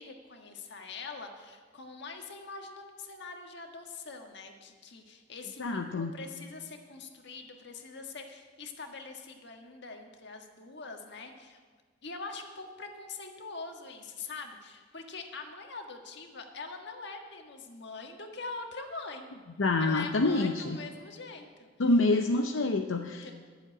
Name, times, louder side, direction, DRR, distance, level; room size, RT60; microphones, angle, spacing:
voice 1, 0.0-11.6 12.0-19.3 19.8-21.9 22.9-23.3, left 4 dB, 65° left, 4 dB, 1.5 m, -43 dB
voice 2, 5.6-6.1 19.6-20.8 21.8-23.3, left 2 dB, 85° left, 5 dB, 0.7 m, -27 dB
11.5 x 7.4 x 9.7 m, 1.5 s
head